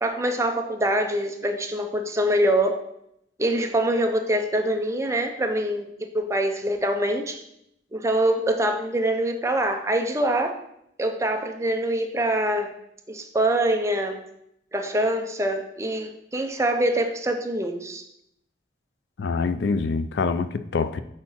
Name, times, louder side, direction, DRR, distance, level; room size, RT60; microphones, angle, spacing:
voice 1, 0.0-2.8 3.4-5.9 6.1-7.4 7.9-10.5 11.0-12.7 13.1-14.2 14.7-18.0, right 1 dB, 15° right, 0.6 m, -24 dB
voice 2, 19.2-21.0, left 4 dB, 70° left, 0.4 m, -25 dB
4.8 x 4.4 x 5.5 m
head